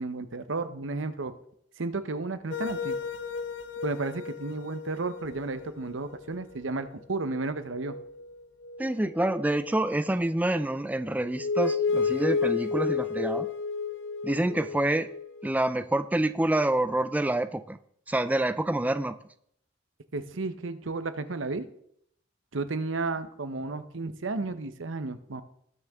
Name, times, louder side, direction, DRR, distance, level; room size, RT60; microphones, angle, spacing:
voice 1, 0.0-1.3 1.8-3.0 3.8-7.9 20.1-21.7 22.5-25.4, right 3 dB, 90° right, 11 dB, 0.9 m, -33 dB
sound 1, 2.5-6.9 7.2-7.3 7.7-10.3 10.9-15.5, left 5 dB, 65° left, 0.6 m, -33 dB
voice 2, 8.8-13.5 14.2-15.1 15.4-17.8 18.1-19.2, right 1 dB, 10° right, 11 dB, 0.3 m, -27 dB
19.0 x 6.5 x 3.6 m, 0.69 s
head